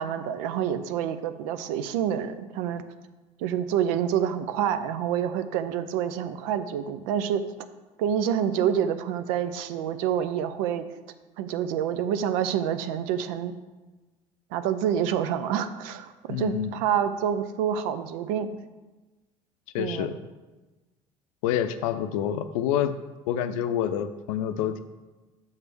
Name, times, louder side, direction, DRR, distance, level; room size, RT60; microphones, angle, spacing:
voice 1, 0.0-2.8 3.4-7.4 8.0-10.9 11.4-13.5 14.5-18.6 19.8-20.1, right 9 dB, 75° right, 11 dB, 0.5 m, -27 dB
voice 2, 16.3-16.8 19.7-20.2 21.4-22.9 23.3-24.8, left 10 dB, 80° left, 11 dB, 0.5 m, -27 dB
7.1 x 3.3 x 6.1 m, 1.2 s
hypercardioid pair, 65°, 17 cm